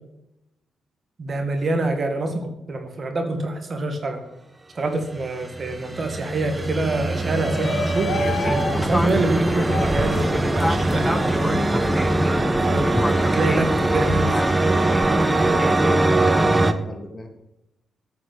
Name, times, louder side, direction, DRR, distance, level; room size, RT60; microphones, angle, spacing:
voice 1, 1.2-4.2 4.8-8.1 8.4-12.9 13.2-14.4, right 2 dB, 50° right, 5 dB, 2.1 m, -26 dB
sound 1, 5.2-16.7, right 2 dB, 20° right, 1.0 m, -22 dB
Shout, 7.0-12.2, left 1 dB, 70° left, 2.2 m, -30 dB
Fixed-wing aircraft airplane, 8.1-15.9, left 1 dB, 10° left, 0.4 m, -27 dB
voice 2, 15.1-17.3, left 2 dB, 30° left, 2 dB, 2.9 m, -37 dB
9.5 x 5.9 x 8.1 m, 0.88 s
supercardioid pair, 55°, 0 cm